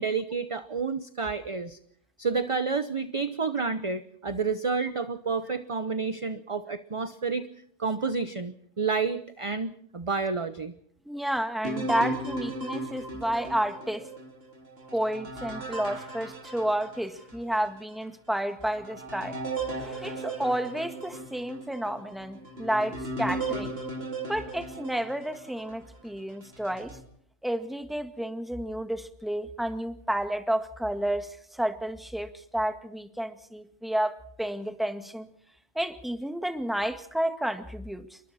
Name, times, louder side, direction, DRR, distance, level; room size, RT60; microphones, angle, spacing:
voice 1, 0.0-1.8 2.2-7.5 7.8-10.7, right 4 dB, 30° right, 11 dB, 0.9 m, -30 dB
voice 2, 11.1-14.1 14.9-19.4 19.8-23.8 24.3-27.0 27.4-35.3 35.8-38.2, right 1 dB, ahead, 8 dB, 1.8 m, -31 dB
sound 1, 11.6-17.4 17.9-18.0 18.6-25.8 26.4-27.0, right 2 dB, 60° right, 3.5 m, -36 dB
28.5 x 23.5 x 4.3 m, 0.65 s
omnidirectional pair, 1.2 m